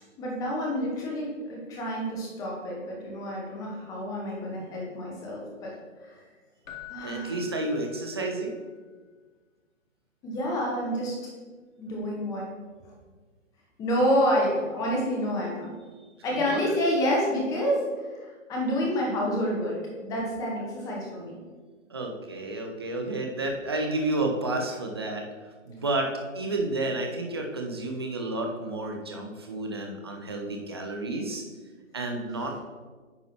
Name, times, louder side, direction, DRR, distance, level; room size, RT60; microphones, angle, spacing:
voice 1, 0.2-5.7 6.0-6.2 6.9-7.4 10.2-11.2 11.8-12.5 13.8-15.8 16.2-19.8 20.0-21.4, equal, 10° left, -2 dB, 0.8 m, -28 dB
Keyboard (musical), 6.6-8.6 11.9-12.0, left 11 dB, 85° left, 1.2 m, -46 dB
voice 2, 7.0-8.6 16.3-16.6 21.9-25.2 25.7-26.1 26.3-31.4 31.9-32.6, right 2 dB, 20° right, 2 dB, 0.4 m, -31 dB
9.4 x 5.4 x 2.9 m, 1.4 s
hypercardioid pair, 145°, 40 cm